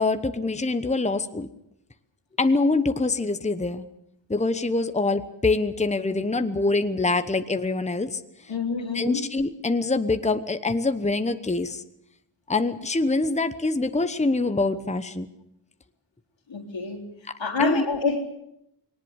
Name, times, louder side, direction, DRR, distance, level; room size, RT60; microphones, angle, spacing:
voice 1, 0.0-1.5 2.4-3.8 4.3-8.2 8.9-11.8 12.5-15.3 17.6-17.8, left 3 dB, 15° left, 10 dB, 1.0 m, -24 dB
voice 2, 8.5-9.2 16.5-17.1 17.4-18.2, left 4 dB, 85° left, 2 dB, 3.6 m, -27 dB
21.0 x 19.0 x 8.1 m, 0.79 s
wide cardioid pair, 70°, 44 cm